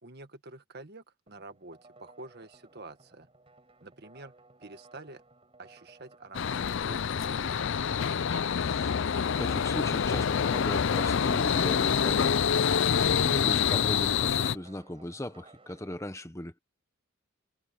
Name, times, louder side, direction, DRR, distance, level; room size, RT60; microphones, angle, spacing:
voice 1, 0.0-3.3 3.8-4.3 4.6-5.2 5.6-7.7, right 2 dB, 50° right, 1.7 m, -48 dB
sound 1, 1.3-16.0, right 3 dB, 25° right, 5.4 m, -58 dB
sound 2, 6.3-14.6, left 7 dB, 60° left, 0.5 m, -26 dB
voice 2, 8.8-9.1 9.4-12.5 13.0-16.6, left 1 dB, 15° left, 1.0 m, -38 dB
head